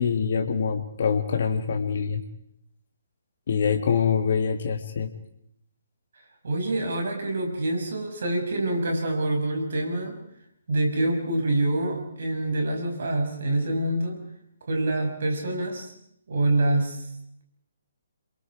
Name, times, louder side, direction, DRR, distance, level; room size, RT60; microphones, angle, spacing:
voice 1, 0.0-2.2 3.5-5.1, left 6 dB, 55° left, 6 dB, 1.8 m, -25 dB
voice 2, 6.4-10.2 10.7-14.2 14.7-15.9 16.3-17.0, right 1 dB, 60° right, 3 dB, 6.1 m, -26 dB
27.5 x 23.0 x 4.8 m, 0.73 s
figure-of-eight pair, 135°, 0 cm